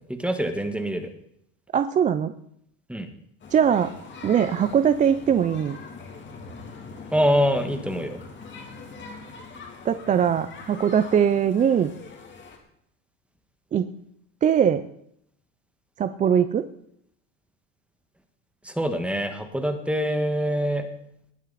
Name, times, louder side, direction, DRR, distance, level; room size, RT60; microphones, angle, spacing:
voice 1, 0.1-1.1 2.9-3.1 7.1-8.2 18.6-20.9, equal, 5° right, 7 dB, 1.5 m, -25 dB
voice 2, 1.7-2.3 3.5-3.9 4.2-5.8 9.8-11.9 13.7-13.9 14.4-14.9 16.0-16.7, right 8 dB, 20° right, 11 dB, 0.4 m, -21 dB
sound 1, 3.4-12.6, left 4 dB, 30° left, 2.9 m, -42 dB
19.0 x 9.1 x 4.1 m, 0.72 s
supercardioid pair, 115°, 40 cm